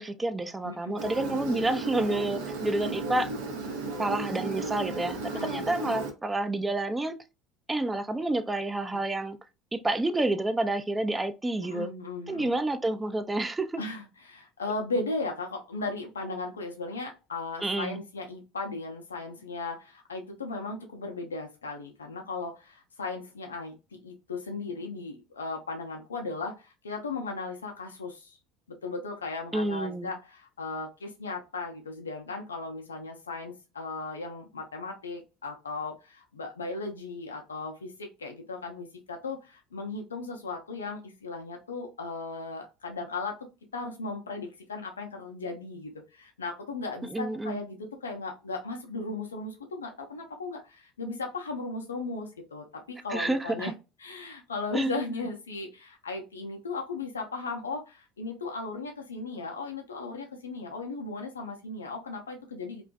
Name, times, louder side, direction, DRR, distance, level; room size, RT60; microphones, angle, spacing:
voice 1, 0.0-3.3 4.0-7.2 7.7-9.4 9.7-11.9 12.3-13.8 17.6-18.0 29.5-30.1 47.1-47.6 53.1-53.7 54.7-55.1, right 2 dB, 15° right, 0.4 m, -29 dB
voice 2, 0.6-1.0 5.2-5.6 11.6-12.5 13.8-28.4 28.7-43.4 43.7-53.7 54.0-62.8, left 3 dB, 90° left, 0.4 m, -36 dB
Engine, 1.0-6.1, right 3 dB, 75° right, 0.6 m, -34 dB
2.5 x 2.2 x 2.2 m
hypercardioid pair, 70°, 0 cm